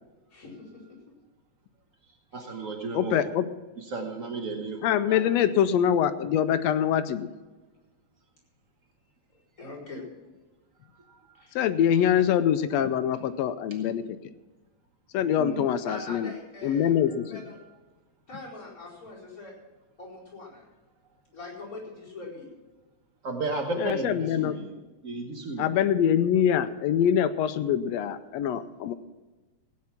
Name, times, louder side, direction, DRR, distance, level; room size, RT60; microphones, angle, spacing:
voice 1, 2.3-3.2 3.8-5.2 11.0-11.3 15.4-15.7 23.2-24.7 25.0-25.8, right 3 dB, 65° right, 3 dB, 0.8 m, -34 dB
voice 2, 2.9-3.5 4.8-7.3 11.6-14.2 15.1-16.3 16.6-17.4 23.8-24.6 25.6-28.9, left 9 dB, 75° left, 11 dB, 1.7 m, -24 dB
voice 3, 9.6-10.0 11.4-11.5 15.8-17.6 18.3-19.5 20.0-20.7 21.3-22.5, left 2 dB, 25° left, -6 dB, 5.2 m, -42 dB
16.5 x 9.5 x 5.9 m, 1.2 s
omnidirectional pair, 3.3 m